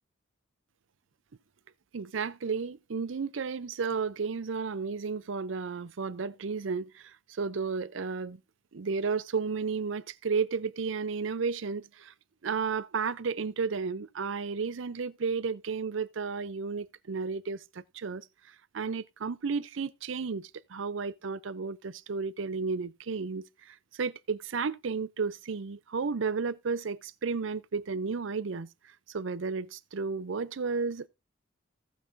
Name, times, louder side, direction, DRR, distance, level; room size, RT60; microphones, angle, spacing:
voice 1, 1.9-8.4 8.7-12.1 12.4-18.2 18.7-28.7 29.1-31.1, right 5 dB, 70° right, 0.6 m, -33 dB
16.5 x 6.2 x 2.6 m
head